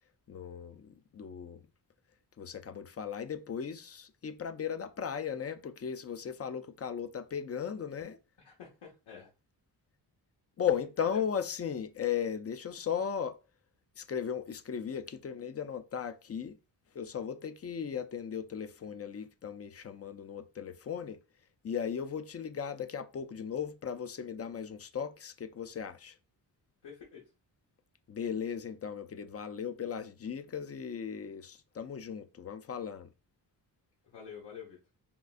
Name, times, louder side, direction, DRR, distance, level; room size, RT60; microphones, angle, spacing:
voice 1, 0.3-1.6 2.4-8.2 10.6-13.4 14.0-16.6 16.9-21.2 21.6-26.2 28.1-33.1, left 7 dB, 35° left, 0.4 m, -37 dB
voice 2, 8.4-9.3 11.0-11.2 26.8-27.2 34.1-34.8, left 7 dB, 80° left, 1.1 m, -47 dB
3.6 x 2.3 x 2.5 m
cardioid pair, 90°, 43 cm